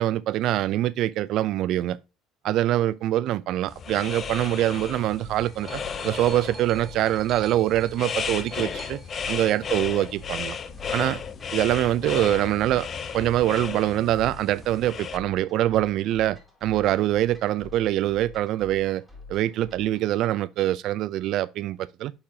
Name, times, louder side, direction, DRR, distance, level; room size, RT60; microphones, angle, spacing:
voice 1, 0.0-2.0 2.4-9.0 9.3-10.6 10.9-11.2 11.5-12.9 13.1-19.0 19.3-22.1, right 13 dB, 65° right, 0.5 m, -24 dB
sound 1, 3.7-15.2, left 6 dB, 40° left, 0.6 m, -34 dB
sound 2, 4.2-20.1, left 4 dB, ahead, 3.5 m, -47 dB
sound 3, 5.0-10.7 11.6-11.7, right 4 dB, 40° right, 0.9 m, -48 dB
6.7 x 5.6 x 2.8 m
supercardioid pair, 95°, 0 cm